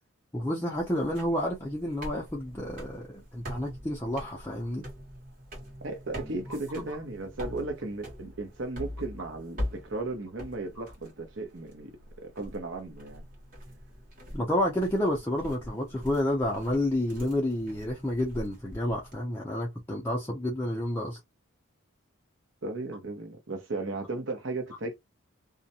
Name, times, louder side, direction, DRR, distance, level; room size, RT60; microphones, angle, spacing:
voice 1, 0.3-4.9 14.3-21.2, left 1 dB, 10° left, 0.4 m, -30 dB
sound 1, 0.8-19.1, equal, 40° right, 1.1 m, -43 dB
voice 2, 5.8-11.9 12.2-13.2 22.6-24.9, right 2 dB, 60° right, 0.8 m, -35 dB
2.4 x 2.1 x 2.7 m
head